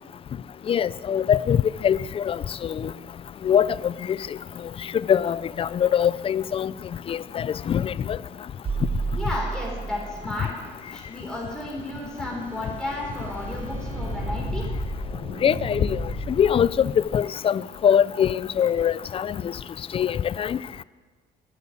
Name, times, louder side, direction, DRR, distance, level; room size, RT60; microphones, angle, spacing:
voice 1, 0.7-2.9 3.4-4.2 5.1-6.7 7.1-8.2 15.4-16.0 16.4-19.3 19.9-20.6, left 8 dB, 35° left, 0.4 m, -23 dB
sound 1, 8.6-10.5, right 4 dB, 35° right, 1.1 m, -30 dB
voice 2, 9.2-10.5 10.9-14.7, left 1 dB, 5° left, 4.0 m, -33 dB
sound 2, 10.7-17.0, equal, 85° right, 5.4 m, -34 dB
12.5 x 7.2 x 9.4 m
cardioid pair, 110°, 17 cm